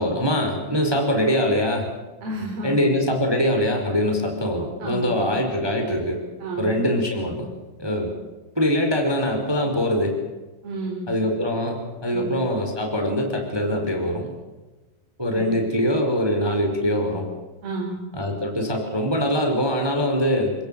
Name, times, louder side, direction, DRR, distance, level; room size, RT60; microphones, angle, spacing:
voice 1, 0.0-1.9 2.6-6.2 6.6-7.5 7.8-8.1 8.5-10.2 11.1-14.3 15.2-17.3 18.1-20.5, equal, 5° right, 3 dB, 4.1 m, -23 dB
voice 2, 2.2-2.8 4.8-5.3 6.4-6.9 10.6-11.1 12.1-12.4 15.3-15.6 17.6-18.0, right 2 dB, 50° right, -3 dB, 6.5 m, -31 dB
29.5 x 17.0 x 9.0 m, 1.2 s
omnidirectional pair, 5.7 m